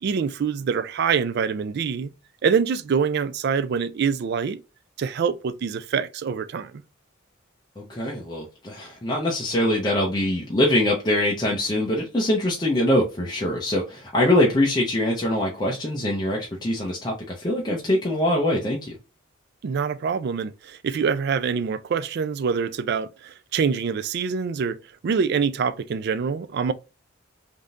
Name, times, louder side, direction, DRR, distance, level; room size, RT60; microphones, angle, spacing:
voice 1, 0.0-2.1 2.4-4.6 5.0-6.8 19.6-24.8 25.0-26.7, right 6 dB, 55° right, 0.3 m, -25 dB
voice 2, 7.8-18.9, left 1 dB, 20° left, 0.6 m, -23 dB
3.5 x 2.7 x 2.4 m
head